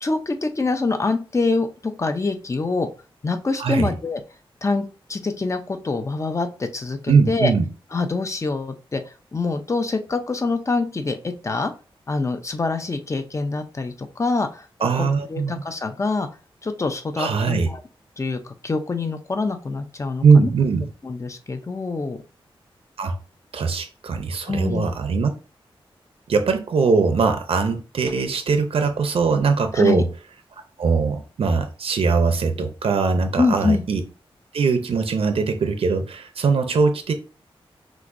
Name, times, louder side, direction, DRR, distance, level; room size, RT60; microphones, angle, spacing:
voice 1, 0.0-2.9 3.2-4.2 4.6-7.5 7.9-9.0 9.3-11.7 12.1-14.7 15.0-16.3 16.6-17.8 18.2-20.5 21.0-22.2 24.5-24.9 29.7-30.0 33.4-33.8, left 3 dB, 30° left, 7 dB, 0.7 m, -25 dB
voice 2, 3.6-3.9 7.1-7.7 14.8-15.6 17.2-17.7 20.2-20.9 23.0-23.2 23.5-25.3 26.3-30.1 30.8-34.0 34.5-37.1, right 5 dB, 75° right, 7 dB, 0.6 m, -21 dB
6.1 x 2.6 x 2.6 m, 0.34 s
wide cardioid pair, 85°, 10 cm